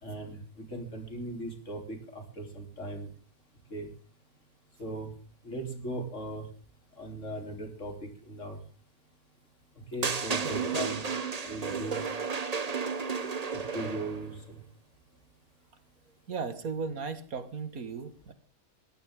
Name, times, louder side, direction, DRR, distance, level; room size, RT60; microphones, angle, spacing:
voice 1, 0.0-3.1 3.7-3.9 4.8-5.1 5.4-6.5 7.0-8.6 9.9-11.0 11.4-12.0 13.5-14.6, right 1 dB, 55° left, 4 dB, 3.9 m, -38 dB
sound 1, 10.0-14.3, right 5 dB, 30° right, 1.0 m, -32 dB
voice 2, 16.3-18.3, right 5 dB, 75° right, 11 dB, 2.1 m, -36 dB
21.0 x 15.0 x 3.7 m, 0.41 s
omnidirectional pair, 1.5 m